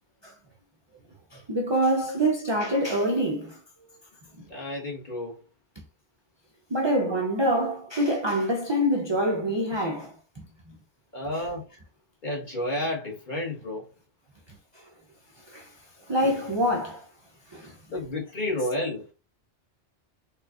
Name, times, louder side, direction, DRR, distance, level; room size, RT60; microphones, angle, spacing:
voice 1, 1.3-3.6 4.4-4.5 6.7-10.1 11.3-11.5 14.7-14.8 15.5-15.7 16.1-17.1 17.5-17.7, right 1 dB, 50° right, 0.3 m, -26 dB
voice 2, 4.5-5.4 7.0-7.1 11.1-11.6 12.2-13.8 17.9-19.0, left 1 dB, 45° left, 1.5 m, -31 dB
4.2 x 2.3 x 2.4 m
omnidirectional pair, 1.2 m